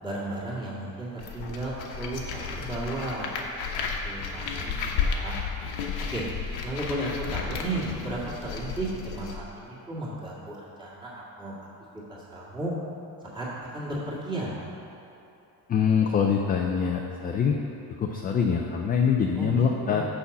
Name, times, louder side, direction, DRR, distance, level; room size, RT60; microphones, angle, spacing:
voice 1, 0.0-3.3 4.0-4.8 5.0-5.3 6.1-6.2 6.6-11.5 12.1-12.7 13.3-13.5 13.7-14.6 19.3-20.1, right 1 dB, 10° right, -8 dB, 1.9 m, -34 dB
sound 1, 1.2-9.4, left 5 dB, 80° left, 1.1 m, -33 dB
voice 2, 15.7-17.6 18.0-20.0, left 6 dB, 25° left, 1 dB, 0.3 m, -24 dB
6.4 x 5.5 x 7.0 m, 2.9 s
cardioid pair, 155°, 38 cm